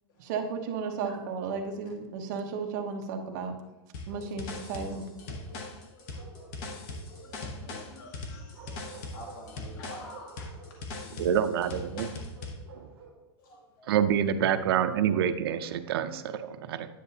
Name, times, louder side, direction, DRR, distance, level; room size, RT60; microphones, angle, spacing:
voice 1, 0.2-3.5 4.1-5.1, right 5 dB, 40° right, 3 dB, 0.9 m, -34 dB
sound 1, 3.9-12.6, left 2 dB, 35° left, 0.9 m, -40 dB
Bark, 4.1-5.7 6.1-7.8 8.5-9.5 9.8-10.8 11.5-13.2, right 3 dB, 15° right, 1.7 m, -51 dB
voice 2, 5.7-11.3 13.4-13.9 14.2-14.7, left 1 dB, 55° left, -1 dB, 1.7 m, -50 dB
voice 3, 11.2-12.1 13.9-16.9, right 9 dB, 65° right, 9 dB, 0.6 m, -27 dB
10.0 x 6.6 x 2.8 m, 1.1 s
supercardioid pair, 175°, 14 cm